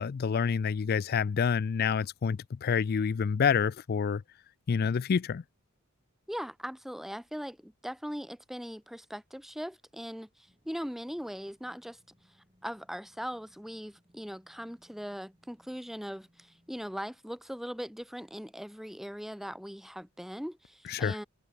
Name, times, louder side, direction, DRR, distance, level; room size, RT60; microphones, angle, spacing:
voice 1, 0.0-4.2 4.7-5.4 20.9-21.2, left 6 dB, 45° left, 0.3 m, -28 dB
voice 2, 6.3-12.0 12.6-21.2, equal, ahead, 1.7 m, -40 dB
sound 1, 10.5-17.2, equal, 20° right, 7.7 m, -69 dB
head